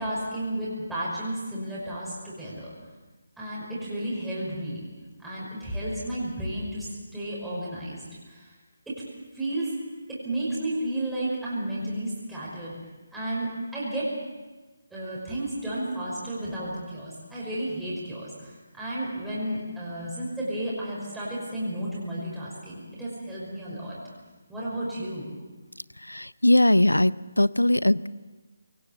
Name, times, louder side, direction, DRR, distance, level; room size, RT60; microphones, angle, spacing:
voice 1, 0.0-2.7 3.4-4.9 5.2-8.0 8.3-8.5 8.9-9.0 9.3-9.7 10.1-12.8 13.1-14.1 14.9-24.0 24.5-25.3, right 1 dB, 5° right, -9 dB, 5.8 m, -32 dB
voice 2, 26.0-28.1, left 1 dB, 90° left, 19 dB, 0.6 m, -20 dB
23.0 x 18.5 x 7.6 m, 1.3 s
figure-of-eight pair, 150°, 0 cm